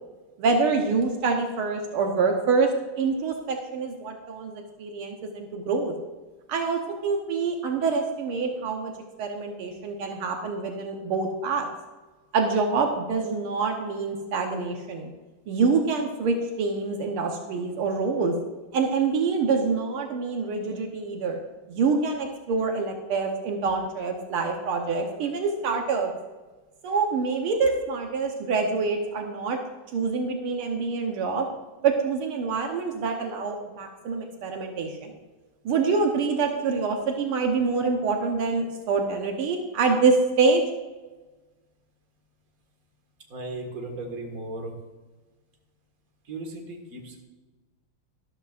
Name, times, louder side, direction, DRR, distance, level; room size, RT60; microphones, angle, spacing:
voice 1, 0.4-2.7 3.0-5.9 6.5-8.9 9.2-11.7 12.3-15.1 15.5-18.3 18.7-21.4 21.7-26.1 26.8-29.6 29.9-31.5 31.8-35.1 35.7-40.6, right 4 dB, 80° right, 3 dB, 1.9 m, -26 dB
voice 2, 43.3-44.8 46.2-47.2, right 2 dB, 40° right, 1 dB, 2.1 m, -36 dB
13.0 x 12.5 x 2.5 m, 1.2 s
omnidirectional pair, 2.4 m